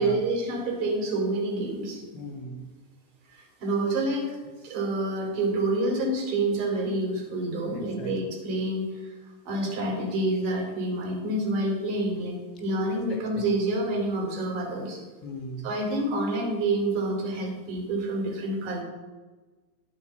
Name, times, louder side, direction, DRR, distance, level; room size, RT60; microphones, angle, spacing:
voice 1, 0.0-2.0 3.3-4.4 4.6-9.1 9.4-15.0 15.6-18.8, right 2 dB, 45° right, -1 dB, 3.1 m, -28 dB
voice 2, 2.1-2.7 7.7-8.1 13.1-13.4 15.2-15.7, equal, 30° left, 3 dB, 1.7 m, -38 dB
11.5 x 4.6 x 5.7 m, 1.3 s
figure-of-eight pair, 90°, 0 cm